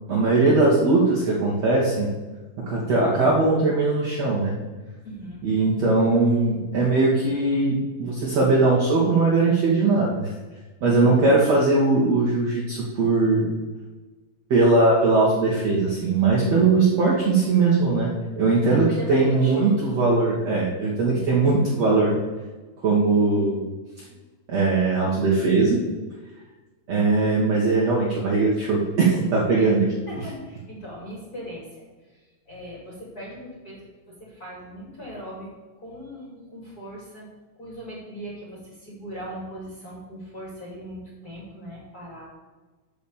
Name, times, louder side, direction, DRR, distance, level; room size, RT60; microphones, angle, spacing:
voice 1, 0.1-2.1 2.7-4.5 5.4-10.3 10.8-13.5 14.5-22.1 22.8-23.7 24.5-25.8 26.9-29.9, right 3 dB, 55° right, -5 dB, 2.0 m, -20 dB
voice 2, 5.0-5.4 10.8-11.2 16.4-16.7 18.7-19.9 20.2-20.5 29.6-29.8 30.1-31.7 32.1-35.5 35.8-37.3 37.6-42.2, equal, 25° left, -5 dB, 2.5 m, -39 dB
6.6 x 6.1 x 7.1 m, 1.3 s
omnidirectional pair, 4.7 m